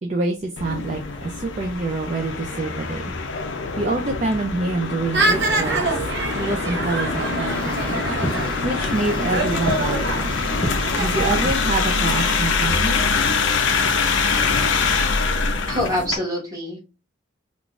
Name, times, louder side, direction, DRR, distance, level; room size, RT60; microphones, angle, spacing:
voice 1, 0.0-3.1 3.8-6.0 6.3-8.0 8.6-10.4 11.0-13.0, right 2 dB, 35° right, 2 dB, 0.4 m, -26 dB
sound 1, 0.6-16.2, left 4 dB, 75° left, 0.5 m, -24 dB
sound 2, 5.1-11.5, right 2 dB, 65° right, 0.7 m, -26 dB
sound 3, 7.2-12.6, left 1 dB, 25° left, 0.6 m, -35 dB
voice 2, 15.7-16.8, left 1 dB, 20° right, -3 dB, 1.3 m, -25 dB
3.6 x 2.4 x 2.4 m, 0.30 s
head